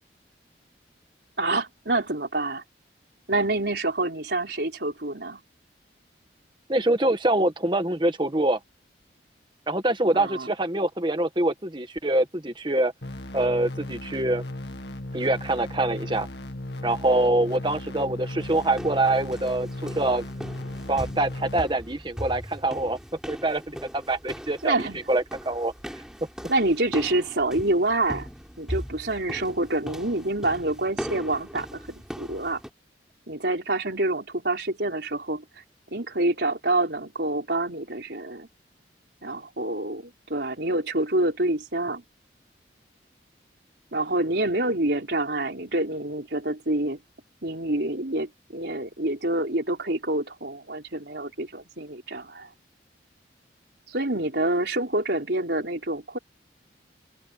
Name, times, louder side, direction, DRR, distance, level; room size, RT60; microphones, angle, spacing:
voice 1, 1.4-2.6 3.3-5.4 10.1-10.5 24.6-25.0 26.5-28.3 28.6-32.6 33.3-35.4 35.9-38.5 39.2-42.0 43.9-47.0 47.4-52.5 53.9-56.2, right 2 dB, 70° right, 4.2 m, -27 dB
voice 2, 6.7-8.6 9.7-12.9 13.3-14.4 15.1-16.3 16.8-20.2 20.9-23.0 23.3-25.7, right 1 dB, 25° right, 1.5 m, -25 dB
sound 1, 13.0-21.6, left 1 dB, 75° left, 2.1 m, -36 dB
sound 2, 18.4-32.7, equal, 5° right, 5.2 m, -39 dB
head